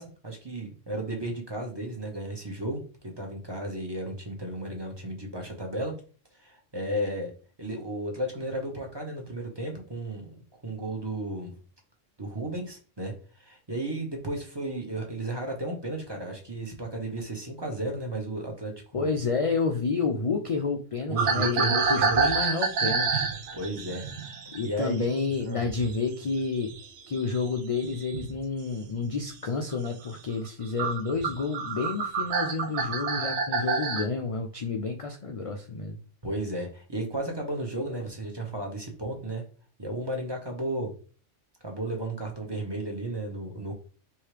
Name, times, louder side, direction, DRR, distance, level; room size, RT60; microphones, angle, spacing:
voice 1, 0.0-2.8 3.2-5.9 6.4-7.3 7.6-10.3 10.6-11.5 12.2-13.1 13.4-19.1 21.1-22.3 23.5-24.1 24.6-25.0 25.5-25.6 36.2-39.4 39.8-40.9 41.6-43.7, right 1 dB, 20° right, 1 dB, 1.0 m, -33 dB
voice 2, 18.9-23.2 24.5-26.7 27.1-36.0, left 4 dB, 55° left, 3 dB, 0.3 m, -30 dB
sound 1, 21.2-26.0 26.2-28.4 28.9-29.2 29.7-29.9 30.5-30.6 30.8-34.1, right 4 dB, 70° right, 1.0 m, -28 dB
4.7 x 3.1 x 3.2 m, 0.38 s
omnidirectional pair, 1.3 m